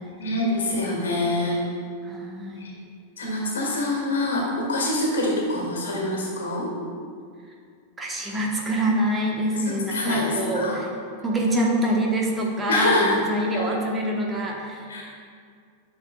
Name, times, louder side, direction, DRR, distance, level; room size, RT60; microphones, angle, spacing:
voice 1, 0.2-1.7 2.6-2.7 3.2-6.7 9.7-10.8 12.7-13.1 13.5-13.7 14.9-15.0, left 1 dB, 65° left, -1 dB, 1.7 m, -25 dB
voice 2, 2.0-2.7 8.0-10.9 11.2-14.8, right 1 dB, 15° right, -1 dB, 1.0 m, -25 dB
10.5 x 6.4 x 2.3 m, 2.2 s
figure-of-eight pair, 90°, 0 cm